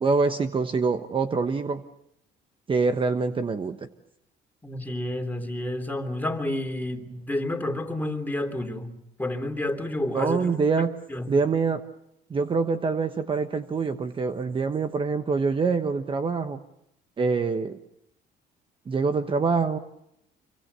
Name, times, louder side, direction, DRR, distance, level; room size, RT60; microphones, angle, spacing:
voice 1, 0.0-1.8 2.7-3.9 10.1-10.9 11.3-11.8 12.3-16.6 17.2-17.8 18.9-19.8, right 4 dB, 30° right, 8 dB, 1.2 m, -25 dB
voice 2, 4.6-8.9 9.2-11.3, left 1 dB, 10° left, 4 dB, 3.3 m, -30 dB
27.0 x 24.5 x 6.8 m, 0.79 s
cardioid pair, 110°, 17 cm